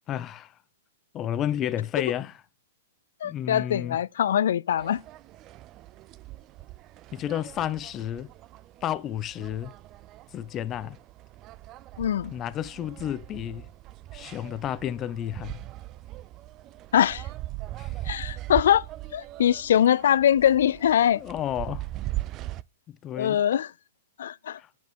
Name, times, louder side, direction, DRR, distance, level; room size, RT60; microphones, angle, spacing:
voice 1, 0.1-0.5 1.1-2.4 3.2-4.0 7.1-8.3 8.8-9.7 10.3-11.0 12.3-13.7 14.1-15.6 17.8-17.9 21.2-21.9 22.9-23.4 24.6-24.7, left 11 dB, 25° left, 0.7 m, -31 dB
voice 2, 3.2-5.0 12.0-12.3 16.9-17.3 18.1-18.8 19.1-21.2 23.2-23.7 24.2-24.6, left 10 dB, 70° left, 0.5 m, -22 dB
sound 1, 4.8-22.6, right 16 dB, 30° right, 0.5 m, -40 dB
9.3 x 5.3 x 6.2 m
hypercardioid pair, 130°, 0 cm